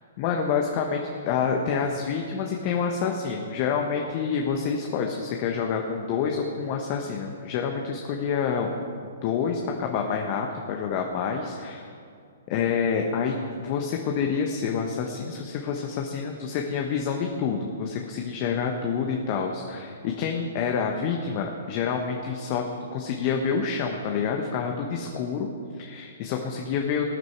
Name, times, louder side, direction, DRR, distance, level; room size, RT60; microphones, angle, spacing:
voice 1, 0.2-8.7 9.2-11.9 12.5-27.1, left 6 dB, 40° left, 2 dB, 1.2 m, -28 dB
19.5 x 9.5 x 4.7 m, 2.4 s
figure-of-eight pair, 120°, 0 cm